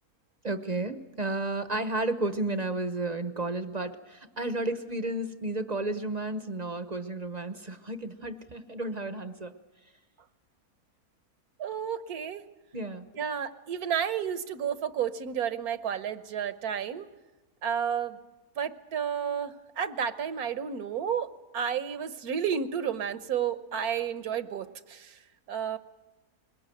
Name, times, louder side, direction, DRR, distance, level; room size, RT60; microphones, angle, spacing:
voice 1, 0.4-9.5 12.7-13.1, right 2 dB, 30° right, 10 dB, 0.8 m, -32 dB
voice 2, 11.6-12.4 13.2-17.1 17.6-18.2 18.6-25.2 25.5-25.8, right 8 dB, 70° right, 12 dB, 1.4 m, -31 dB
22.5 x 20.5 x 9.1 m, 1.1 s
omnidirectional pair, 1.7 m